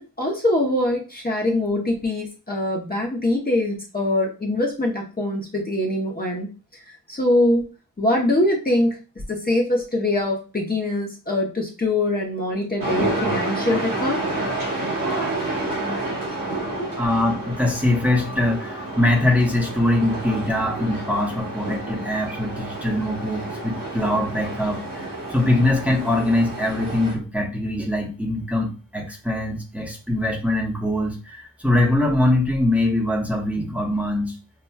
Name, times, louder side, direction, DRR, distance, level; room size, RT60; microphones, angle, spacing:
voice 1, 0.0-6.8 7.1-7.7 8.0-9.0 9.3-14.2 16.6-16.9, left 1 dB, 30° left, -2 dB, 0.7 m, -23 dB
sound 1, 12.8-27.1, right 2 dB, 80° right, 1.3 m, -29 dB
voice 2, 17.0-34.3, left 1 dB, 5° right, -1 dB, 0.9 m, -22 dB
5.6 x 2.2 x 2.2 m, 0.33 s
wide cardioid pair, 90°, 33 cm